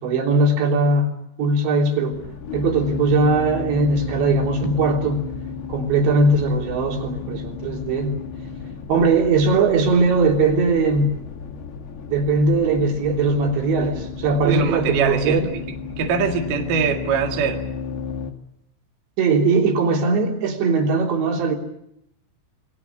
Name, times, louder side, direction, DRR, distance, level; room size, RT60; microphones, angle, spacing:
voice 1, 0.0-2.2 2.5-5.3 5.7-8.2 8.9-11.2 12.1-15.5 19.2-21.6, right 3 dB, 70° right, 2 dB, 5.5 m, -20 dB
sound 1, 2.1-18.3, left 5 dB, 65° left, 3.8 m, -33 dB
voice 2, 14.4-15.4 16.0-17.6, right 6 dB, 55° right, 2 dB, 3.2 m, -22 dB
28.0 x 20.5 x 8.6 m, 0.78 s
omnidirectional pair, 5.3 m